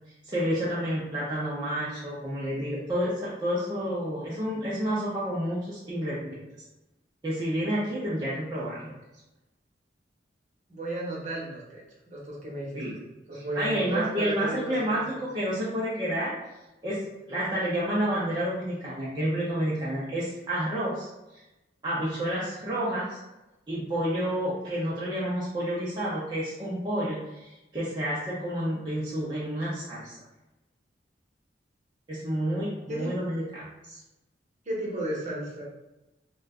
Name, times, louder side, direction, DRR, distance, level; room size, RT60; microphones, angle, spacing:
voice 1, 0.2-6.4 7.2-8.9 12.8-12.9 13.5-16.3 16.8-21.4 21.8-23.2 23.7-30.2 32.1-34.0, equal, 25° right, -9 dB, 0.5 m, -30 dB
voice 2, 10.7-12.8 13.3-15.0 15.4-15.5 32.9-33.1 34.6-35.6, right 1 dB, 40° right, -5 dB, 0.9 m, -34 dB
2.5 x 2.2 x 3.5 m, 0.99 s
head